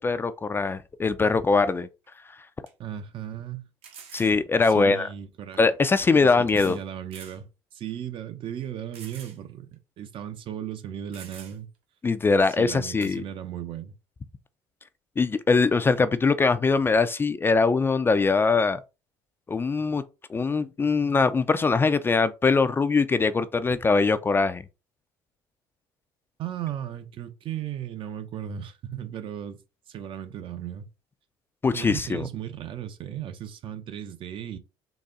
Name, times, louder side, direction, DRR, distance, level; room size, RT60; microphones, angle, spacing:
voice 1, 0.0-1.9 4.1-5.1 5.6-6.8 12.0-13.2 15.2-18.8 19.5-20.0 20.3-24.6 31.6-32.3, left 4 dB, 20° left, 0.3 m, -22 dB
sound 1, 2.0-2.1 2.7-2.8 3.8-4.4 5.5-5.6 6.5-6.8 7.1-7.4 7.9-8.0 8.9-9.4 9.7-9.8 10.7-10.8 11.1-11.8 13.0-13.2, right 7 dB, 70° right, 1.1 m, -46 dB
voice 2, 2.8-3.7 4.6-5.6 6.1-11.7 12.6-14.0 26.4-29.6 29.9-30.9 31.7-34.6, right 10 dB, 50° right, 0.6 m, -36 dB
4.0 x 2.2 x 3.7 m
supercardioid pair, 95°, 11 cm